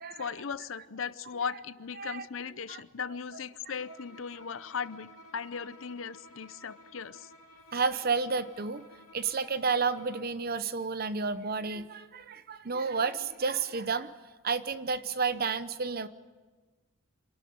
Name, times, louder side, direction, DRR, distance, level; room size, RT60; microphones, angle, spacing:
voice 1, 0.2-7.3, left 6 dB, 65° left, 16 dB, 0.6 m, -38 dB
Bowed string instrument, 3.8-10.4, equal, 90° left, 2.6 m, -54 dB
voice 2, 7.7-8.8 9.1-14.1 14.4-16.1, right 4 dB, 45° right, 14 dB, 0.8 m, -31 dB
26.0 x 12.5 x 9.4 m, 1.3 s
head